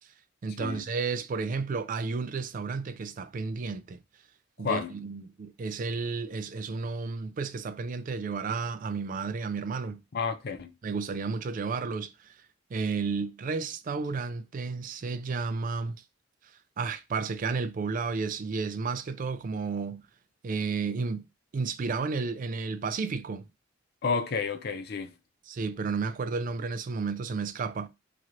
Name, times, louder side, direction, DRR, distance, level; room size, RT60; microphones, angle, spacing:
voice 1, 0.4-4.0 4.6-10.0 10.8-12.3 12.7-16.0 16.8-20.0 20.4-21.2 21.5-23.5 25.5-27.9, right 4 dB, 40° right, 0.3 m, -32 dB
voice 2, 4.6-4.9 10.1-10.7 24.0-25.1, left 5 dB, 55° left, 0.5 m, -31 dB
3.0 x 2.9 x 2.4 m
head